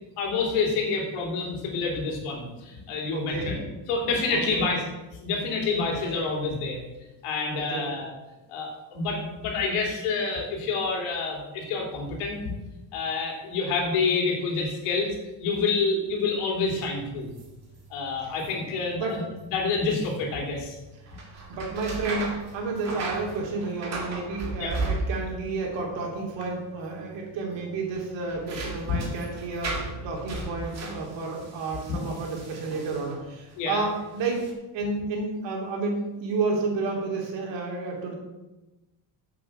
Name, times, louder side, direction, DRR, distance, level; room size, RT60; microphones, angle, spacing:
voice 1, 0.2-3.6 3.9-4.8 5.2-6.8 7.2-8.1 8.5-12.5 12.9-17.3 17.9-19.2 19.5-20.8 24.6-24.7 28.9-29.0 31.9-32.0 33.6-33.8, left 4 dB, 85° left, 0 dB, 3.1 m, -28 dB
voice 2, 3.1-3.5 4.3-4.7 7.5-7.9 18.9-19.2 21.3-34.5 34.7-38.1, right 3 dB, 60° right, -1 dB, 3.1 m, -31 dB
sound 1, 16.6-33.6 34.1-34.5, right 3 dB, 30° right, 1.9 m, -37 dB
7.9 x 7.9 x 6.2 m, 1.1 s
cardioid pair, 170°, 50 cm